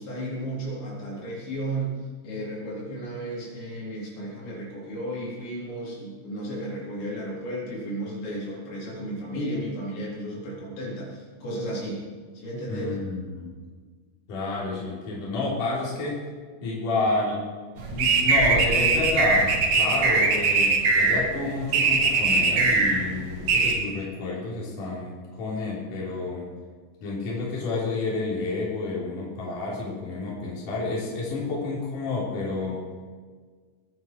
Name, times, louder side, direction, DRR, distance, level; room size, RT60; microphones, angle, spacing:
voice 1, 0.0-2.0 2.2-12.0 12.3-12.9, right 1 dB, 70° left, -5 dB, 6.0 m, -33 dB
voice 2, 12.7-13.5 14.3-16.2 16.6-17.4 17.9-26.5 27.0-32.8, left 3 dB, 45° left, -5 dB, 4.6 m, -29 dB
sound 1, 17.8-23.7, right 3 dB, 60° right, 1.8 m, -21 dB
22.0 x 9.3 x 4.7 m, 1.5 s
omnidirectional pair, 5.4 m